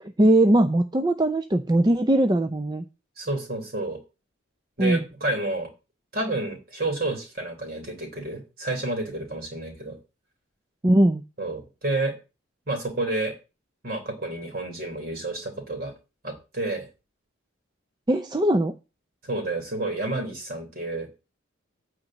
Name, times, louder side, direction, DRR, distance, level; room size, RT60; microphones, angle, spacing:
voice 1, 0.0-2.8 4.8-5.0 10.8-11.2 18.1-18.8, right 1 dB, 20° right, 9 dB, 0.5 m, -20 dB
voice 2, 3.2-4.0 4.8-5.7 6.1-10.0 11.4-12.2 12.7-13.3 13.8-15.9 16.2-16.9 19.2-21.1, right 2 dB, 45° right, 3 dB, 3.5 m, -30 dB
9.1 x 5.1 x 7.6 m, 0.30 s
head